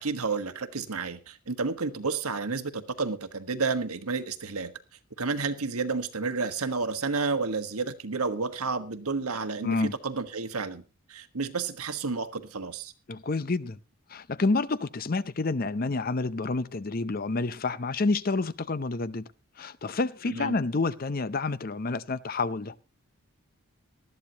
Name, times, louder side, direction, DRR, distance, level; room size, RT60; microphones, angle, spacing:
voice 1, 0.0-4.7 5.2-10.8 11.1-12.9 20.3-20.5, right 4 dB, 85° right, 1.4 m, -31 dB
voice 2, 9.6-9.9 13.1-13.8 14.1-19.3 19.6-22.7, left 3 dB, 40° left, 0.6 m, -29 dB
19.0 x 13.0 x 2.9 m
head